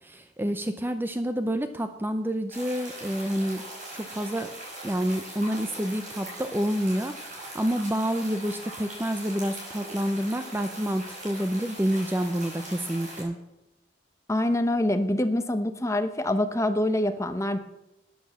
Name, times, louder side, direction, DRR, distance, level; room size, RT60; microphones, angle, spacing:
voice 1, 0.0-3.7 3.9-4.5 4.8-13.4, equal, 10° right, 9 dB, 0.5 m, -28 dB
sound 1, 2.5-13.2, right 1 dB, 40° right, 5.3 m, -41 dB
voice 2, 14.3-17.6, left 1 dB, 15° left, 9 dB, 0.9 m, -25 dB
12.0 x 9.5 x 7.0 m, 0.92 s
head